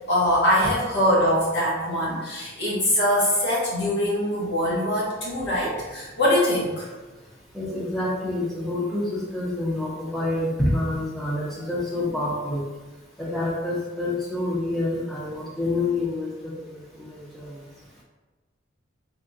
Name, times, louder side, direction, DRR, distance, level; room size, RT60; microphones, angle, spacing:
voice 1, 0.1-6.9, equal, 60° left, -7 dB, 1.1 m, -23 dB
voice 2, 7.5-12.6 13.2-16.3 17.0-17.5, left 2 dB, ahead, -7 dB, 0.6 m, -27 dB
3.4 x 2.2 x 2.6 m, 1.2 s
head